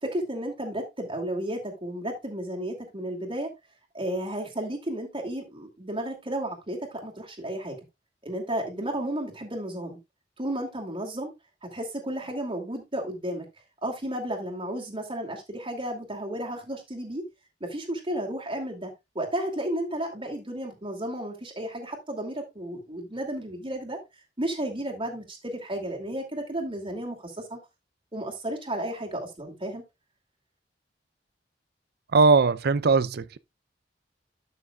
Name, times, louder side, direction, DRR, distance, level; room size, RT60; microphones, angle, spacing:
voice 1, 0.0-3.5 3.9-7.8 8.2-10.0 10.4-11.3 11.6-13.5 13.8-17.2 17.6-24.0 24.4-27.6 28.1-29.8, right 1 dB, 30° right, 2.5 m, -33 dB
voice 2, 32.1-33.4, right 4 dB, 60° right, 0.5 m, -20 dB
12.5 x 6.3 x 2.3 m
head